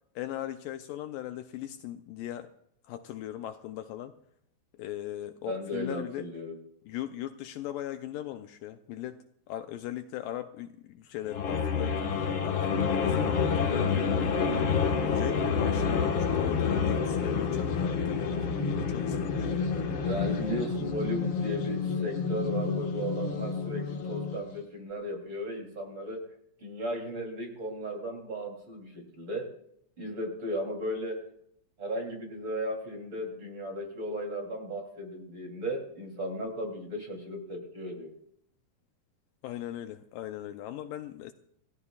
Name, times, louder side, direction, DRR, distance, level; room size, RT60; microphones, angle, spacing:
voice 1, 0.2-2.5 2.8-4.1 4.8-6.3 6.9-14.3 15.1-19.5 39.4-41.3, left 12 dB, 80° left, 2.2 m, -39 dB
voice 2, 5.4-6.6 20.0-26.2 26.6-29.5 30.0-31.2 31.8-38.1, equal, 35° right, 3.6 m, -35 dB
sound 1, 11.3-24.5, left 5 dB, 50° left, 1.6 m, -28 dB
28.0 x 15.5 x 2.4 m
omnidirectional pair, 4.1 m